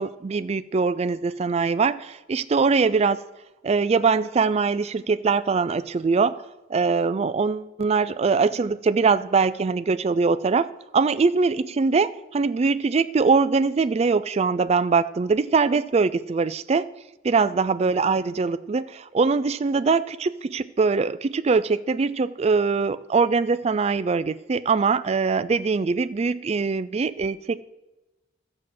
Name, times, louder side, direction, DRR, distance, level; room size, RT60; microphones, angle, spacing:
voice 1, 0.0-3.2 3.6-6.4 6.7-10.7 10.9-16.9 17.2-27.6, right 4 dB, 30° right, 0.3 m, -22 dB
13.0 x 7.6 x 5.9 m
head